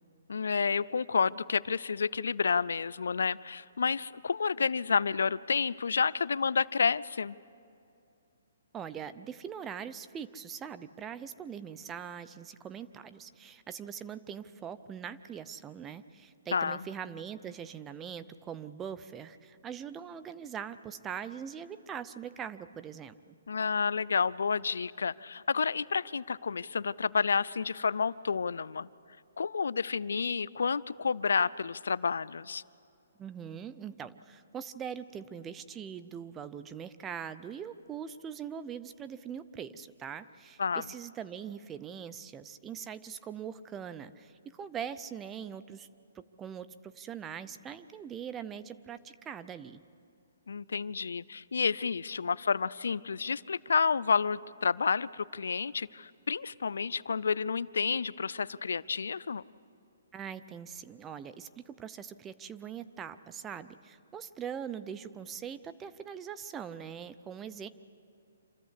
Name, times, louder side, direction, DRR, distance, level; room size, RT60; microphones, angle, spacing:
voice 1, 0.3-7.3 16.5-16.9 23.5-28.9 29.4-32.6 40.6-40.8 50.5-59.4, left 5 dB, 80° left, 20 dB, 0.4 m, -30 dB
voice 2, 8.7-23.4 33.2-45.9 46.1-49.8 60.1-67.7, right 8 dB, 15° right, 13 dB, 0.6 m, -42 dB
26.5 x 14.0 x 8.3 m, 2.6 s
hypercardioid pair, 155°, 0 cm